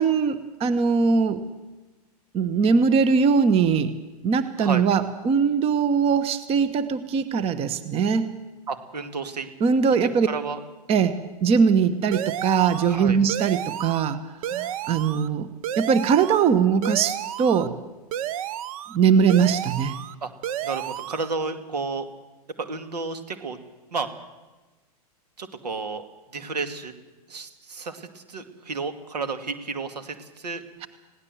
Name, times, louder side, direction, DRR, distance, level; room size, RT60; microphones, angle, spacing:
voice 1, 0.0-1.4 2.3-3.9 4.2-8.3 9.6-10.3 10.9-14.2 14.5-15.5 15.8-17.7 18.9-20.0, right 6 dB, 30° right, 13 dB, 1.2 m, -21 dB
voice 2, 8.7-9.5 10.0-10.6 12.9-13.2 20.2-20.3 20.6-22.1 22.6-23.6 23.9-24.1 25.4-26.0 26.3-26.9 27.3-30.6, right 4 dB, 85° right, 8 dB, 2.3 m, -32 dB
sound 1, 12.1-13.0 13.3-14.1 14.4-15.3 15.6-16.5 16.8-17.7 18.1-19.0 19.3-20.2 20.4-21.3, right 11 dB, 60° right, 0.9 m, -32 dB
21.0 x 17.0 x 7.8 m, 1.2 s
hypercardioid pair, 115°, 20 cm